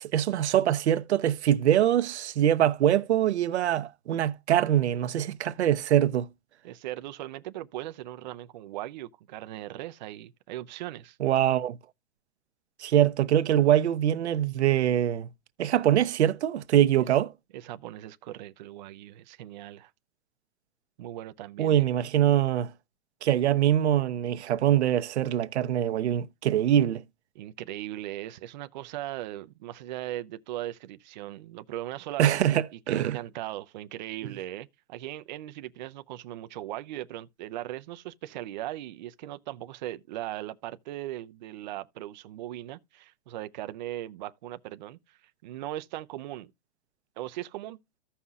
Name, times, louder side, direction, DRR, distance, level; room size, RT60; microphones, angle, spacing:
voice 1, 0.0-6.3 11.2-11.8 12.8-15.3 15.6-17.3 21.6-22.7 23.2-27.0 32.2-33.2, right 11 dB, 75° right, 0.8 m, -23 dB
voice 2, 6.6-11.2 17.5-19.9 21.0-21.8 27.3-46.5 47.2-47.8, right 14 dB, 40° right, 0.5 m, -39 dB
15.0 x 5.6 x 2.3 m
hypercardioid pair, 155°, 34 cm